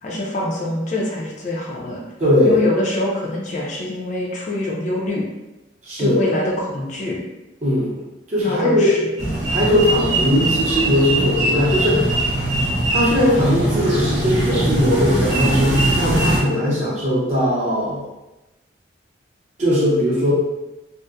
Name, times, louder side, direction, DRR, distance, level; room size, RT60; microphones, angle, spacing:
voice 1, 0.0-2.0 2.4-5.2 6.0-7.2 8.4-9.4, left 1 dB, 40° left, -2 dB, 0.5 m, -25 dB
voice 2, 2.2-2.6 5.8-6.2 7.6-8.0 8.3-8.9 9.5-12.1 12.9-18.1 19.6-20.3, left 1 dB, 40° right, -7 dB, 0.6 m, -19 dB
sound 1, 9.2-16.4, right 1 dB, 80° right, 0.7 m, -21 dB
2.6 x 2.0 x 2.3 m, 1.0 s
head